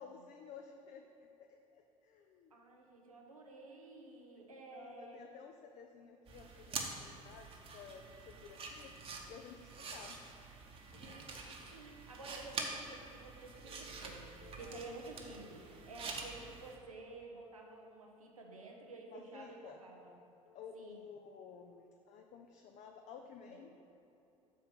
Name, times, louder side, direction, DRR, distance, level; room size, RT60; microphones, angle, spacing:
voice 1, 0.0-2.5 4.4-8.9 9.3-10.2 14.6-14.8 19.1-19.8 20.5-23.8, left 6 dB, 45° left, 4 dB, 0.5 m, -54 dB
voice 2, 2.5-5.2 10.9-20.1 20.7-21.0 23.5-23.8, right 3 dB, 80° right, 0 dB, 0.8 m, -52 dB
sound 1, 6.3-16.8, right 4 dB, 30° right, 1.0 m, -46 dB
Telephone, 10.9-13.4 13.6-13.9 14.4-14.9 15.4-15.9 16.4-16.9 17.4-17.9 18.4-19.0 19.4-20.0 20.5-20.8, left 2 dB, 90° left, 0.5 m, -64 dB
7.4 x 4.3 x 5.8 m, 3.0 s
figure-of-eight pair, 60°, 18 cm